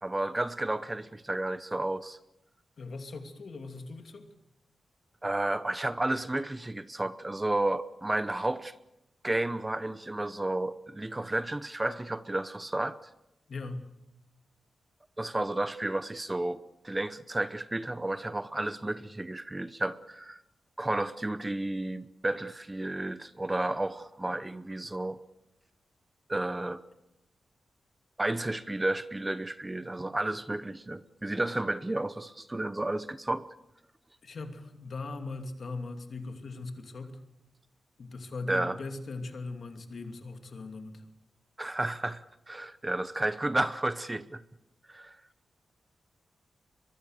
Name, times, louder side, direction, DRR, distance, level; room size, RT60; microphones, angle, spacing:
voice 1, 0.0-2.2 5.2-8.7 9.2-13.0 15.2-20.4 20.8-25.2 26.3-26.8 28.2-33.5 38.5-38.8 41.6-44.4 44.9-45.2, right 2 dB, 15° right, 0.8 m, -32 dB
voice 2, 2.8-4.3 13.5-13.8 34.2-37.2 38.0-41.0, left 3 dB, 55° left, 2.7 m, -40 dB
23.0 x 22.5 x 6.6 m
wide cardioid pair, 105°, 0 cm